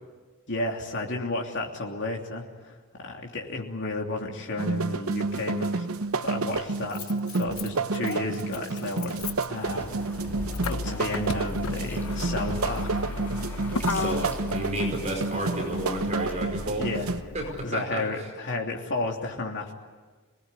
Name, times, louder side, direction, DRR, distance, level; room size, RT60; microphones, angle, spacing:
voice 1, 0.5-5.9 6.2-7.0 7.3-9.2 9.5-10.2 10.7-13.0 14.0-14.2 16.8-17.1 17.6-19.7, left 2 dB, 55° left, 0 dB, 3.1 m, -32 dB
sound 1, 4.6-17.2, right 3 dB, 75° right, 0.9 m, -30 dB
Motor vehicle (road), 5.3-5.4 6.5-17.7, left 3 dB, 75° left, 0.9 m, -35 dB
sound 2, 9.5-16.5, equal, 10° left, 3.6 m, -44 dB
voice 2, 13.8-16.9 17.3-18.3, right 1 dB, 35° right, 1 dB, 5.0 m, -32 dB
26.5 x 19.5 x 9.9 m, 1.4 s
head